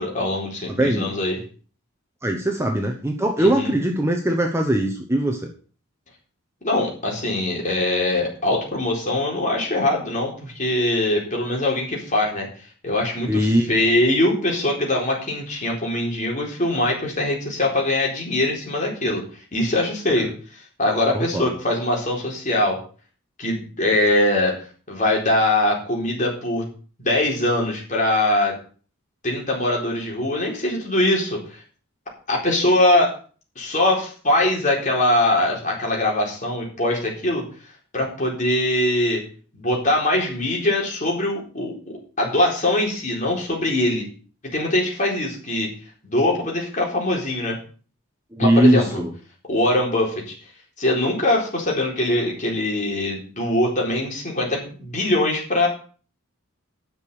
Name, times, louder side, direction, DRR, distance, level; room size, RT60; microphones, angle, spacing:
voice 1, 0.0-1.4 3.4-3.7 6.6-12.5 12.8-19.2 19.5-22.8 23.4-24.6 24.9-26.7 27.0-28.6 29.2-31.6 32.3-33.1 33.6-37.4 37.9-39.2 39.5-41.8 42.2-44.1 44.4-45.7 46.0-47.6 48.4-49.0 49.5-50.3 50.8-55.7, left 1 dB, 35° left, -2 dB, 4.2 m, -22 dB
voice 2, 0.7-1.1 2.2-5.5 13.3-13.7 21.1-21.5 48.3-49.1, right 1 dB, 10° right, 3 dB, 1.0 m, -20 dB
10.5 x 6.6 x 7.0 m, 0.40 s
head